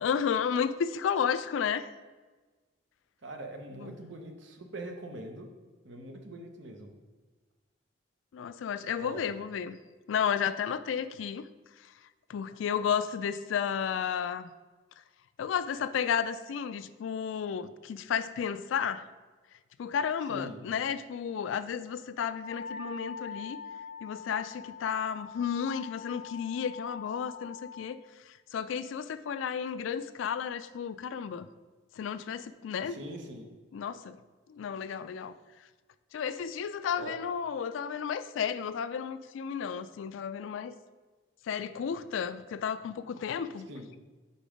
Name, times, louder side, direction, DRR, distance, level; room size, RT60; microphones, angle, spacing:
voice 1, 0.0-1.9 3.7-3.9 8.3-9.8 10.1-11.5 12.3-14.5 15.4-19.1 19.8-23.6 24.0-28.0 28.3-31.5 32.0-33.0 33.7-34.2 34.5-35.4 36.1-40.7 41.4-43.7, left 7 dB, 85° left, 14 dB, 0.3 m, -32 dB
voice 2, 3.2-5.5 5.8-6.9 9.0-9.3 20.3-20.6 32.9-33.5 37.0-37.1 43.7-43.9, right 1 dB, 75° right, 4 dB, 0.8 m, -42 dB
Wind instrument woodwind instrument, 22.3-27.9, left 5 dB, 35° left, 1.5 m, -44 dB
5.4 x 4.2 x 4.9 m, 1.3 s
head